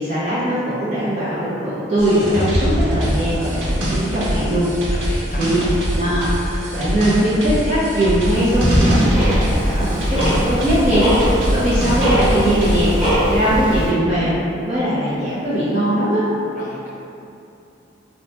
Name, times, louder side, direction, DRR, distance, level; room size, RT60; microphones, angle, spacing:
voice 1, 0.0-4.7 5.4-5.6 5.9-14.4 14.7-16.2, equal, 35° right, -11 dB, 0.7 m, -20 dB
sound 1, 2.0-13.1, equal, 85° right, 0.9 m, -23 dB
voice 2, 4.9-5.9 16.5-16.9, left 1 dB, 40° left, -4 dB, 0.5 m, -35 dB
Tick-tock, 8.3-13.9, equal, 5° right, 1.3 m, -21 dB
4.5 x 2.1 x 2.8 m, 2.7 s
head